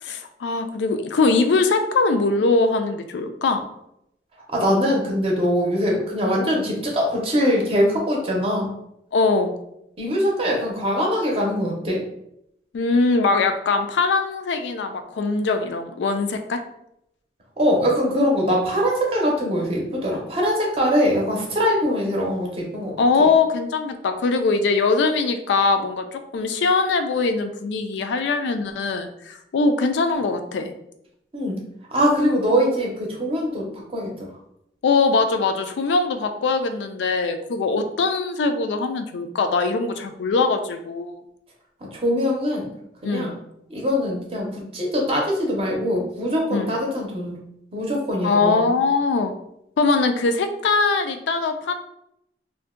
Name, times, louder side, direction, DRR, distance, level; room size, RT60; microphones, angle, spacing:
voice 1, 0.0-3.7 9.1-9.5 12.7-16.6 23.0-30.7 34.8-41.2 43.0-43.3 46.5-46.8 48.2-49.3 49.8-51.7, left 3 dB, 80° left, 7 dB, 0.4 m, -21 dB
voice 2, 4.5-8.7 10.0-12.0 17.6-23.3 31.3-31.6 31.9-34.3 41.9-42.7 43.0-43.3 43.7-47.4 47.7-48.7, equal, 30° right, -2 dB, 0.6 m, -22 dB
2.6 x 2.1 x 3.6 m, 0.78 s
head